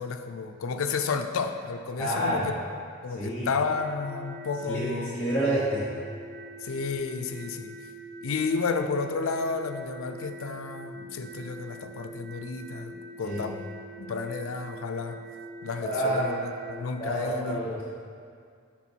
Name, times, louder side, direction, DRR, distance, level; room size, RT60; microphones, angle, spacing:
voice 1, 0.0-2.5 3.0-5.2 6.6-7.7 8.2-13.7 14.0-15.2 15.6-17.8, left 4 dB, 85° left, 8 dB, 0.4 m, -31 dB
voice 2, 2.0-2.4 3.2-3.5 4.7-4.9 5.1-5.9 13.2-13.4 15.9-16.4 17.0-17.8, right 1 dB, 10° left, -11 dB, 0.8 m, -28 dB
sound 1, 3.7-16.8, right 2 dB, 40° right, 0.7 m, -44 dB
7.1 x 4.4 x 4.4 m, 2.2 s
head